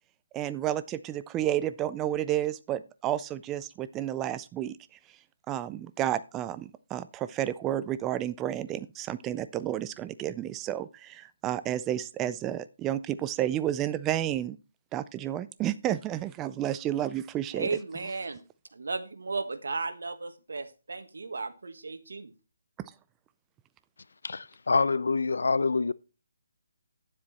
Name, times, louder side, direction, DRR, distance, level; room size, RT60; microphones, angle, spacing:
voice 1, 0.3-4.8 5.5-14.6 14.9-17.7, right 12 dB, 10° right, 0.4 m, -31 dB
voice 2, 17.5-18.4 18.7-22.3, right 3 dB, 80° right, 1.4 m, -35 dB
voice 3, 24.2-25.9, left 4 dB, 80° left, 0.6 m, -26 dB
9.7 x 7.6 x 4.2 m
hypercardioid pair, 170°, 0 cm